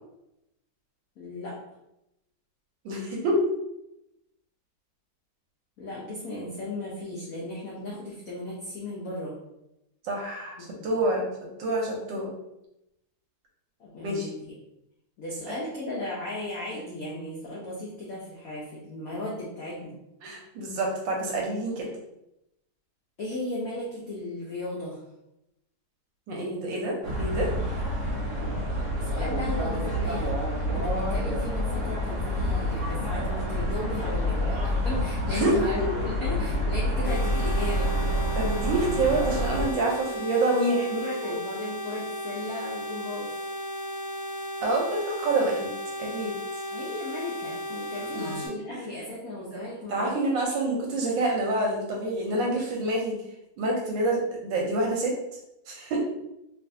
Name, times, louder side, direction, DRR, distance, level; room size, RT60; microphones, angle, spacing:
voice 1, 1.2-1.6 5.8-9.3 10.6-10.9 13.8-14.6 15.2-20.0 23.2-25.0 28.3-30.4 30.7-38.0 41.0-43.3 46.7-50.3, left 1 dB, 85° left, -5 dB, 0.7 m, -36 dB
voice 2, 2.8-3.4 10.0-10.6 10.8-11.2 11.6-12.3 14.0-14.3 20.2-21.9 26.3-27.5 35.2-35.9 38.3-41.4 44.6-45.7 46.0-46.3 48.0-48.4 48.7-48.8 49.5-49.6 49.9-53.2 53.6-55.2 55.7-56.0, right 2 dB, 70° right, -2 dB, 1.2 m, -27 dB
sound 1, 27.0-39.7, equal, 50° right, 0.9 m, -28 dB
sound 2, 37.0-48.5, left 1 dB, 55° left, 0.9 m, -35 dB
3.2 x 2.6 x 2.6 m, 0.87 s
omnidirectional pair, 2.3 m